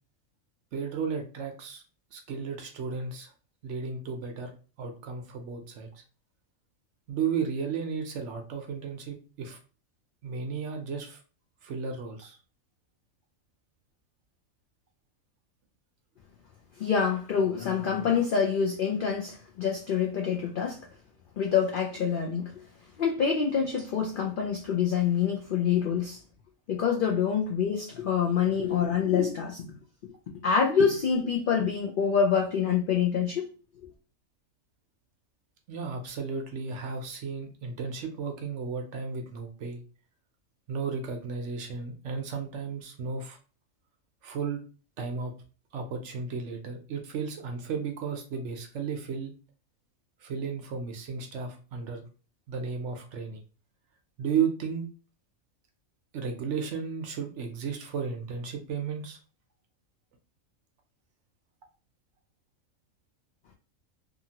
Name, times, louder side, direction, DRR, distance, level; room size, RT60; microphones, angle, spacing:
voice 1, 0.7-1.8 2.1-3.3 3.6-4.5 4.8-5.9 7.1-9.6 10.2-11.2 11.6-12.4 35.7-39.8 40.7-43.4 44.2-44.6 45.0-45.3 45.7-49.3 50.2-52.0 52.5-53.4 54.2-54.8 56.1-59.2, right 6 dB, 65° right, 0.8 m, -34 dB
voice 2, 16.8-20.8 21.4-22.5 23.0-26.2 26.7-29.6 30.4-33.5, left 7 dB, 85° left, 0.4 m, -26 dB
2.7 x 2.5 x 2.7 m
omnidirectional pair, 1.5 m